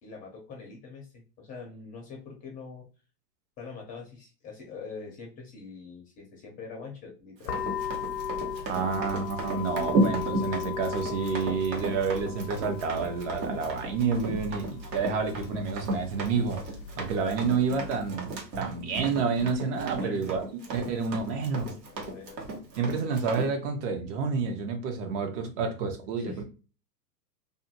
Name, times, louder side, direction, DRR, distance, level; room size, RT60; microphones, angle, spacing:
voice 1, 0.0-2.9 3.6-7.6 20.0-20.4 21.8-22.6 26.2-26.4, left 4 dB, 15° left, 0.5 m, -44 dB
Run, 7.4-23.5, right 2 dB, 80° right, 1.3 m, -34 dB
sound 1, 7.5-18.1, left 7 dB, 85° left, 0.7 m, -37 dB
voice 2, 8.7-16.6 17.0-21.7 22.8-26.4, right 5 dB, 45° right, 0.8 m, -29 dB
2.6 x 2.5 x 2.7 m
hypercardioid pair, 135°, 49 cm